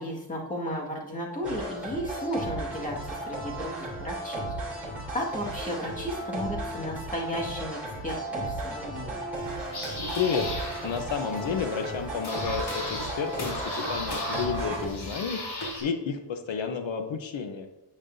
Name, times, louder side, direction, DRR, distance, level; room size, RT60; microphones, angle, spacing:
voice 1, 0.0-3.0 3.3-4.4 5.1-9.2, equal, 15° left, -3 dB, 1.8 m, -34 dB
sound 1, 1.4-14.9, right 1 dB, 5° right, 3.1 m, -35 dB
sound 2, 2.9-15.6, right 2 dB, 50° right, 2.4 m, -51 dB
sound 3, 9.3-15.8, left 1 dB, 60° left, 3.3 m, -36 dB
voice 2, 10.1-10.5 10.8-17.7, left 6 dB, 85° left, 6 dB, 0.9 m, -31 dB
10.0 x 8.4 x 2.7 m, 0.97 s
wide cardioid pair, 155°, 45 cm